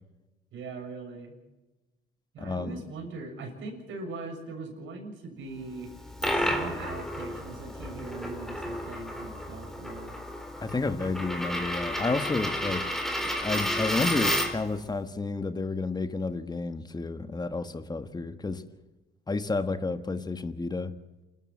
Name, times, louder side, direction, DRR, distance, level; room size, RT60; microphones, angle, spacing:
voice 1, 0.5-1.3 2.3-5.9 6.3-10.1, right 3 dB, 75° right, 3 dB, 7.0 m, -40 dB
voice 2, 2.4-2.8 10.6-12.9 13.2-18.6 19.3-20.9, left 3 dB, 20° left, 10 dB, 1.6 m, -31 dB
Coin (dropping), 5.9-14.7, equal, ahead, 4.0 m, -31 dB
28.5 x 13.0 x 7.7 m, 1.1 s
cardioid pair, 90°, 20 cm